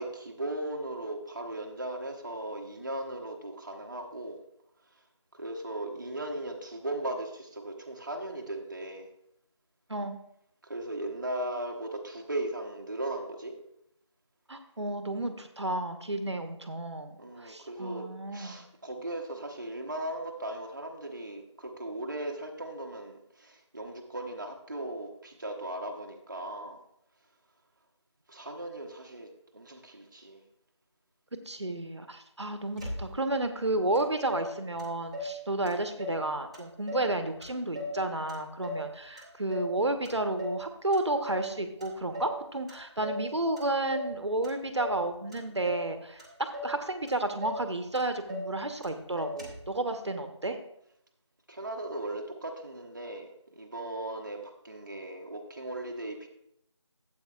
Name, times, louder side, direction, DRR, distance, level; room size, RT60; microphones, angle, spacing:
voice 1, 0.0-4.4 5.3-9.1 10.6-13.6 17.2-18.0 18.3-26.8 28.3-30.4 51.5-56.3, right 1 dB, 40° right, 1 dB, 0.9 m, -37 dB
voice 2, 14.5-18.6 31.3-50.6, right 2 dB, 65° right, 7 dB, 1.1 m, -32 dB
Motor vehicle (road), 32.8-33.4 33.9-34.0 34.3-35.4 35.7-36.3 36.5-37.1 37.4-38.9 39.2-39.8 40.0-40.6 40.9-41.5 41.8-42.4 42.7-43.3 43.6-44.1 44.4-45.0 45.3-45.9 46.2-46.8 47.1-47.2 47.4-47.7 47.9-48.5 48.8-48.9 49.2-49.7, left 1 dB, 10° right, 1.0 m, -38 dB
12.5 x 8.0 x 2.4 m, 0.77 s
figure-of-eight pair, 170°, 16 cm